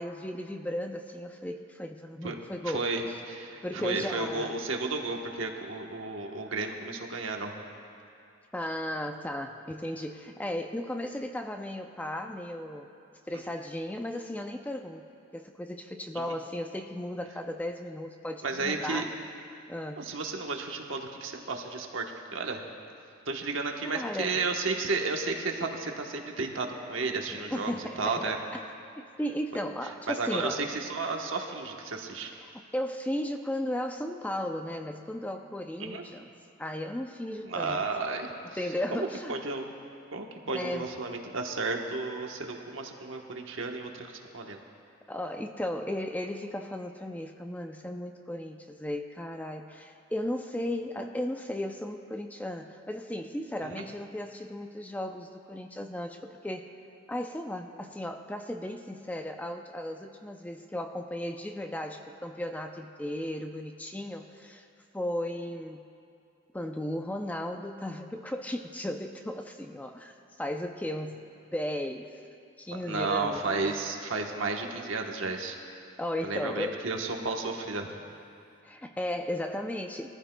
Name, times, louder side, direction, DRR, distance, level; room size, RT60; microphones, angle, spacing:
voice 1, 0.0-3.2 3.6-4.6 8.5-12.9 13.3-15.0 15.3-19.1 19.7-20.1 23.8-24.4 27.3-28.6 29.0-30.7 32.4-36.3 36.6-37.8 38.5-39.4 40.5-40.9 45.1-56.7 57.1-64.7 64.9-65.9 66.5-71.2 71.5-72.2 72.6-73.8 76.0-76.9 78.6-80.1, left 1 dB, 10° left, 5 dB, 0.4 m, -35 dB
voice 2, 2.7-7.5 16.3-16.4 18.4-19.1 20.0-22.6 23.3-28.4 30.1-32.3 35.8-36.0 37.4-38.3 38.9-39.6 40.1-44.6 53.6-53.8 72.8-75.6 76.2-77.9, right 3 dB, 70° right, 2 dB, 1.1 m, -33 dB
22.0 x 14.5 x 2.2 m, 2.5 s
head